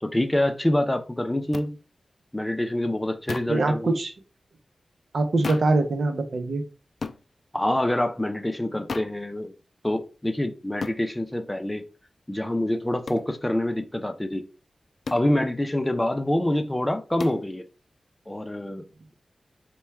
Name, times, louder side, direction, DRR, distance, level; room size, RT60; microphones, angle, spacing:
voice 1, 0.0-1.8 2.3-3.9 7.5-9.5 9.8-11.8 12.3-14.4 15.1-17.7 18.3-18.8, left 1 dB, 15° left, 7 dB, 0.5 m, -26 dB
sound 1, 1.5-1.7 3.3-3.6 5.4-5.8 7.0-7.2 8.9-9.2 10.8-11.0 13.1-13.3 15.0-15.3 17.2-17.4, left 4 dB, 65° left, 0.3 m, -34 dB
voice 2, 3.5-4.1 5.1-6.7, right 2 dB, 75° right, 7 dB, 0.6 m, -23 dB
4.2 x 2.2 x 3.4 m, 0.32 s
wide cardioid pair, 80°, 0 cm